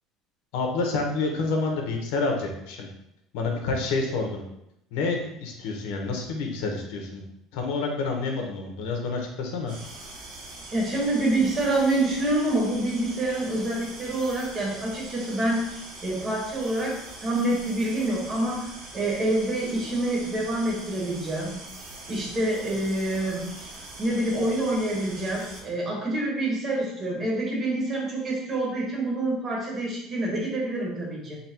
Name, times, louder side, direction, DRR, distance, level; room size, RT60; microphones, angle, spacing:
voice 1, 0.5-2.9 3.3-4.4 4.9-7.2 7.5-9.7, left 3 dB, 80° left, 2 dB, 0.9 m, -28 dB
sound 1, 9.7-25.6, right 2 dB, 80° right, 1.4 m, -42 dB
voice 2, 10.7-15.7 16.0-18.7 18.9-21.6 22.1-23.7 24.0-31.4, right 1 dB, 25° right, -2 dB, 1.1 m, -27 dB
4.1 x 2.3 x 4.2 m, 0.81 s
cardioid pair, 160°, 0 cm